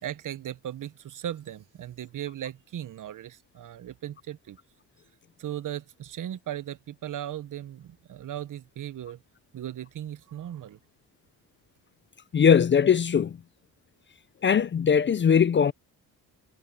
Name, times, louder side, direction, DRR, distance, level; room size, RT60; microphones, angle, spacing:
voice 1, 0.0-4.6 5.4-9.2 9.5-10.8, right 11 dB, 55° right, 0.9 m, -37 dB
voice 2, 12.3-13.3 14.4-15.7, left 7 dB, 30° left, 0.5 m, -20 dB
cardioid pair, 110°, 37 cm